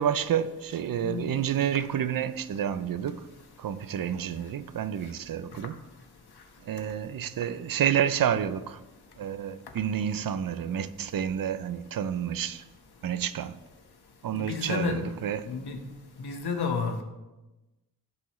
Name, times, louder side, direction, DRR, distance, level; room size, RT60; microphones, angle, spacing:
voice 1, 0.0-3.3 3.6-5.8 6.6-8.8 9.2-12.6 13.0-13.6 14.2-15.5, right 9 dB, 60° right, 0.5 m, -29 dB
voice 2, 14.3-15.0 15.5-15.9 16.2-17.0, left 5 dB, 75° left, 1.2 m, -31 dB
14.5 x 4.8 x 3.1 m
wide cardioid pair, 170°, 39 cm